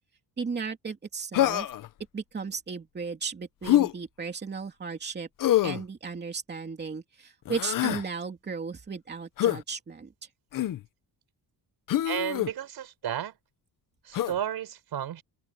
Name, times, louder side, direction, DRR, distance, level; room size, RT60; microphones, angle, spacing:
voice 1, 0.4-1.7 2.1-5.3 5.6-10.1, right 5 dB, 25° right, 2.8 m, -35 dB
Human voice, 1.3-1.9 3.6-3.9 5.4-5.8 7.4-8.0 9.4-9.6 10.5-10.8 11.9-12.5 14.1-14.4, left 13 dB, 50° left, 0.7 m, -25 dB
voice 2, 12.0-13.3 14.0-15.2, right 10 dB, 65° right, 6.3 m, -33 dB
open air
cardioid pair, 180°, 42 cm